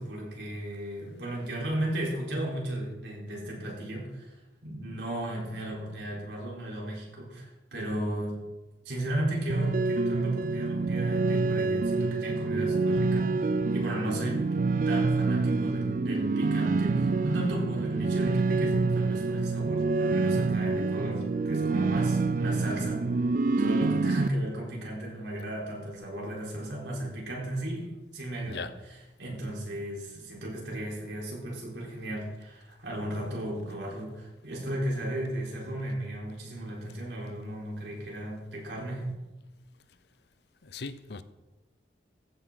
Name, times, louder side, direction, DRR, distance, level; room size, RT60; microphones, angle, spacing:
voice 1, 0.0-8.4 8.8-14.5 14.9-23.0 23.6-28.7 29.2-39.1, right 1 dB, 75° right, 4.2 m, -35 dB
sound 1, 9.5-24.3, right 3 dB, 45° right, 0.4 m, -27 dB
voice 2, 40.6-41.2, left 4 dB, 65° left, 0.7 m, -38 dB
15.0 x 9.4 x 4.0 m
head